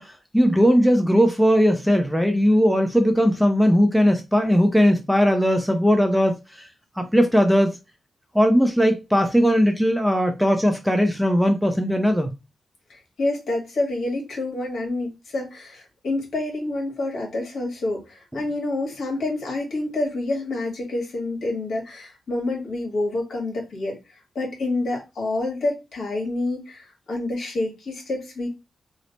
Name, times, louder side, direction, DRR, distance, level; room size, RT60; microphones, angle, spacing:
voice 1, 0.0-6.7 7.0-7.8 8.3-12.3, equal, ahead, 0.4 m, -19 dB
voice 2, 12.9-28.6, left 2 dB, 65° left, 1.4 m, -28 dB
3.1 x 2.0 x 3.9 m
wide cardioid pair, 165°, 0 cm